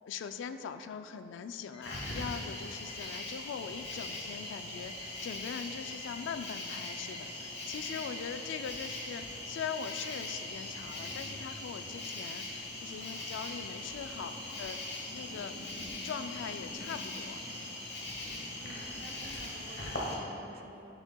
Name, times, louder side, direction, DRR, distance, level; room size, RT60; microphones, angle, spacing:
voice 1, 0.0-14.8 15.1-17.4 19.4-19.6, left 7 dB, 90° left, 10 dB, 0.3 m, -41 dB
Alarm, 1.7-2.2 2.7-3.2 3.7-4.2 4.7-5.2 5.7-6.2 6.7-7.2 7.7-8.2 8.7-9.2 9.7-10.2 10.7-11.3, left 2 dB, 25° left, 0.7 m, -53 dB
Cricket, 1.8-20.1, left 2 dB, 65° left, 1.0 m, -41 dB
voice 2, 18.6-21.0, right 2 dB, 50° right, 4 dB, 0.5 m, -52 dB
7.2 x 6.5 x 2.2 m, 2.9 s
head